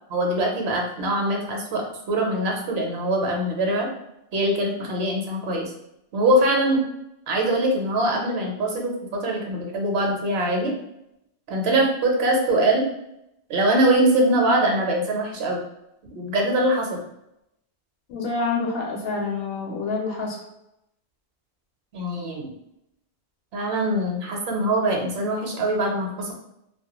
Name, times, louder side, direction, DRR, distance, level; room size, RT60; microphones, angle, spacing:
voice 1, 0.1-3.9 4.3-5.7 6.1-6.8 7.3-10.7 11.5-12.9 13.5-15.6 16.1-17.0 21.9-22.5 23.5-26.3, right 1 dB, 70° right, 0 dB, 0.8 m, -23 dB
voice 2, 18.1-20.4, left 4 dB, 65° left, -1 dB, 0.7 m, -27 dB
2.2 x 2.1 x 2.9 m, 0.83 s
omnidirectional pair, 1.2 m